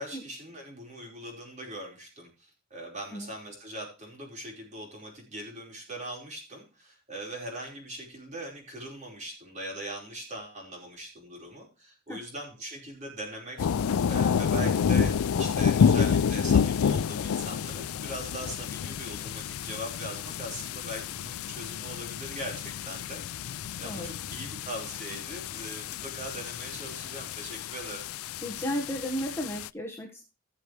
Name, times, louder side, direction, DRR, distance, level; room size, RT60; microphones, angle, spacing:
voice 1, 0.0-13.6 14.0-23.2 23.5-28.0, right 1 dB, 35° right, -1 dB, 4.8 m, -41 dB
sound 1, 13.6-29.7, left 7 dB, 75° left, 0.4 m, -29 dB
voice 2, 23.8-24.1 28.4-30.2, equal, 10° left, 0 dB, 1.4 m, -34 dB
17.0 x 6.7 x 3.2 m, 0.32 s
head